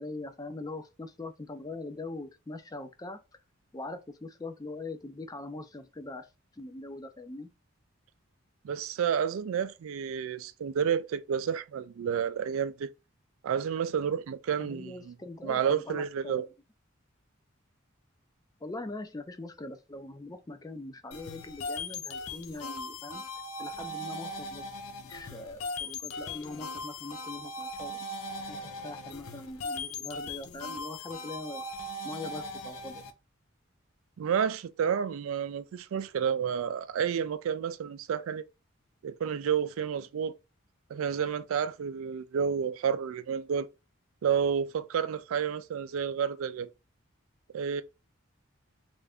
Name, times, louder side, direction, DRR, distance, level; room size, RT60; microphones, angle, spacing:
voice 1, 0.0-3.2 3.7-7.5 14.6-16.5 18.6-23.2 23.6-24.7 25.0-28.0 28.5-31.6 32.0-33.0, left 2 dB, 20° left, 0.4 m, -42 dB
voice 2, 8.6-12.9 13.4-15.1 15.4-16.5 34.2-38.4 39.0-40.3 40.9-43.7 44.2-46.7 47.5-47.8, right 7 dB, 80° right, 0.3 m, -30 dB
sound 1, 21.1-33.1, left 2 dB, 85° left, 0.6 m, -39 dB
3.3 x 2.5 x 3.4 m
head